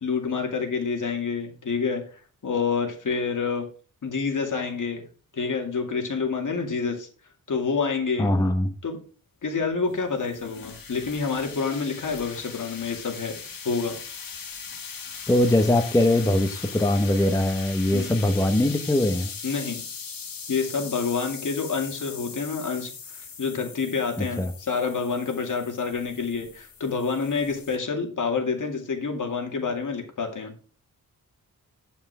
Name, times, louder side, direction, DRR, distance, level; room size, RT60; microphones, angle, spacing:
voice 1, 0.0-2.0 2.4-3.7 4.0-5.0 5.3-7.1 7.5-8.3 8.8-9.0 9.4-13.4 13.6-14.0 17.9-18.1 19.4-19.8 20.5-30.5, left 5 dB, 65° left, 3 dB, 2.3 m, -28 dB
voice 2, 8.2-8.7 15.3-19.3 24.4-24.5, left 1 dB, 10° left, 6 dB, 0.9 m, -21 dB
sound 1, 9.6-27.8, left 6 dB, 80° left, 1.7 m, -40 dB
9.7 x 5.7 x 4.7 m, 0.38 s
wide cardioid pair, 115°, 33 cm